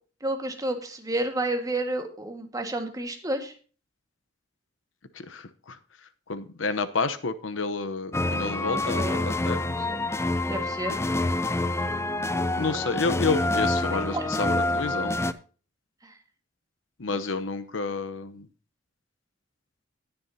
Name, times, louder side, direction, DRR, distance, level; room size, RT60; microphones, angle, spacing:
voice 1, 0.2-3.5 8.6-9.3 9.6-10.1 10.5-11.0 14.1-14.3 14.7-14.8 16.0-16.1, right 1 dB, 20° right, 5 dB, 1.7 m, -31 dB
voice 2, 5.2-5.8 6.3-9.7 12.6-15.2 17.0-18.5, left 4 dB, 85° left, 11 dB, 0.9 m, -30 dB
sound 1, 8.1-15.3, left 2 dB, 15° left, 0.5 m, -27 dB
19.0 x 7.1 x 2.8 m, 0.38 s
head